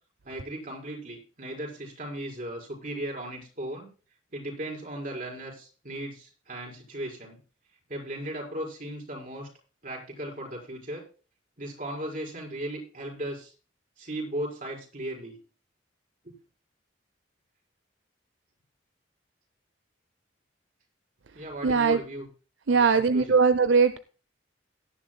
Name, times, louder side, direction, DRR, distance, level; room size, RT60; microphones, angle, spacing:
voice 1, 0.2-3.9 4.3-7.4 7.9-9.5 9.8-11.0 11.6-13.5 14.0-15.4 16.2-16.3 21.3-22.3 22.7-23.4, right 1 dB, 45° right, 0 dB, 4.6 m, -37 dB
voice 2, 21.6-22.0 22.7-24.0, right 5 dB, 75° right, 13 dB, 0.6 m, -20 dB
17.5 x 10.5 x 2.2 m, 0.36 s
head